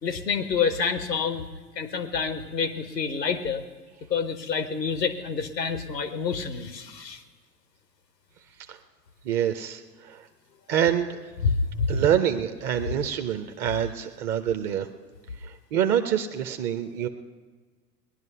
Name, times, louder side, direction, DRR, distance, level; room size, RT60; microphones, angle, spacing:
voice 1, 0.0-1.5 1.7-3.6 4.1-7.2 11.4-11.9, left 5 dB, 85° left, 10 dB, 1.1 m, -27 dB
voice 2, 9.2-10.3 10.7-11.2 11.9-14.9 15.4-17.1, right 9 dB, 25° right, 6 dB, 0.4 m, -26 dB
18.5 x 11.0 x 5.7 m, 1.4 s
figure-of-eight pair, 85°, 48 cm